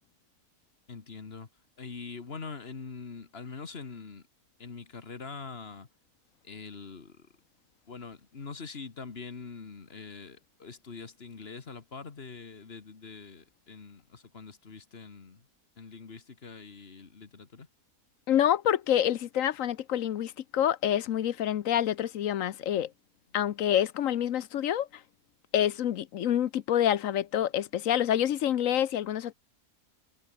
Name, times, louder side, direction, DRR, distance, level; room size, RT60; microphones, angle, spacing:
voice 1, 0.9-1.5 1.8-4.2 4.6-5.9 6.4-7.3 7.9-15.5 15.8-17.7, left 4 dB, 45° left, 1.8 m, -44 dB
voice 2, 18.3-22.9 23.3-24.9 25.5-29.3, left 10 dB, 70° left, 1.1 m, -27 dB
omnidirectional pair, 1.5 m